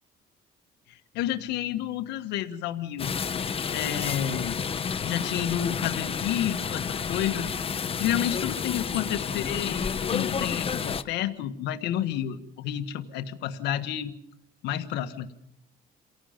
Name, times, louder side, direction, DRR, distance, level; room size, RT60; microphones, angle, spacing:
voice 1, 0.9-3.1 3.4-4.6 5.0-14.1 14.6-15.4, left 11 dB, 85° left, 8 dB, 1.5 m, -30 dB
sound 1, 3.0-11.0, left 6 dB, 35° left, 1.0 m, -30 dB
29.0 x 17.5 x 5.2 m, 0.75 s
cardioid pair, 110°, 17 cm